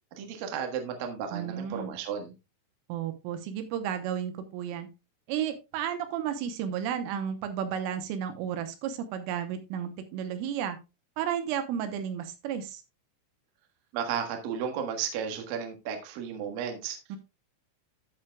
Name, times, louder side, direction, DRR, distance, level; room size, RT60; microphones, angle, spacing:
voice 1, 0.2-2.3 13.9-17.2, right 7 dB, 65° right, 4 dB, 2.5 m, -34 dB
voice 2, 1.3-1.9 2.9-4.9 5.3-10.8 11.2-12.8 17.1-17.2, right 9 dB, 80° right, 8 dB, 3.4 m, -33 dB
13.0 x 7.3 x 2.3 m, 0.26 s
omnidirectional pair, 5.8 m